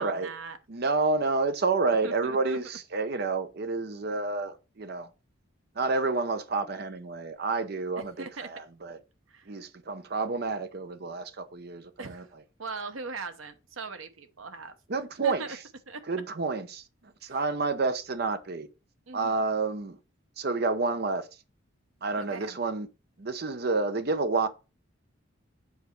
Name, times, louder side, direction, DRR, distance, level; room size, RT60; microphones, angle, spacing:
voice 1, 0.0-0.6 2.0-2.6 8.0-8.5 9.3-9.5 12.0-12.3 12.6-14.7 15.2-15.6 15.9-16.0 17.2-17.4 19.1-19.3 22.2-22.6, right 4 dB, 90° right, 0.9 m, -40 dB
voice 2, 0.7-5.1 5.7-9.0 9.5-12.2 14.9-15.6 16.1-18.7 19.1-20.0 20.4-21.3 22.0-22.9 23.2-24.5, right 3 dB, 50° right, 0.7 m, -29 dB
7.1 x 4.1 x 4.6 m
head